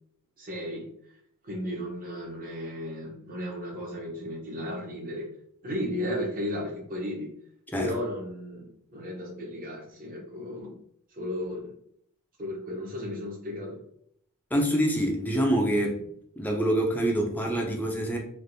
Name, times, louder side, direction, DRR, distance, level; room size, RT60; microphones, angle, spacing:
voice 1, 0.4-0.9 1.4-5.3 5.6-7.3 7.8-10.7 11.1-11.8 12.4-13.8, left 1 dB, 40° right, -1 dB, 0.8 m, -34 dB
voice 2, 14.5-16.0 16.4-18.2, right 1 dB, 10° left, 1 dB, 0.5 m, -26 dB
3.3 x 2.5 x 2.6 m, 0.69 s
head